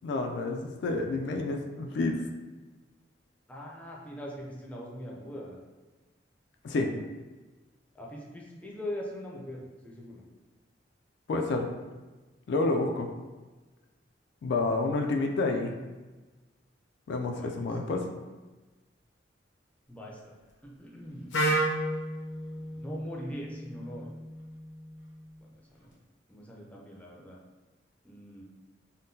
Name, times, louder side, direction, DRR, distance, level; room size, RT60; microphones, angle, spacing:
voice 1, 0.0-2.2 6.6-6.9 11.3-11.7 12.5-13.1 14.4-15.8 17.1-18.1, left 2 dB, 65° left, 3 dB, 0.3 m, -29 dB
voice 2, 3.5-5.6 7.9-10.2 17.3-17.8 19.9-20.4 20.6-21.3 22.6-24.1 25.4-26.0 26.3-27.4 28.0-28.4, equal, 10° left, -3 dB, 0.4 m, -42 dB
Wind instrument woodwind instrument, 21.3-25.2, right 1 dB, 85° left, 0.7 m, -32 dB
3.6 x 2.2 x 2.6 m, 1.2 s
head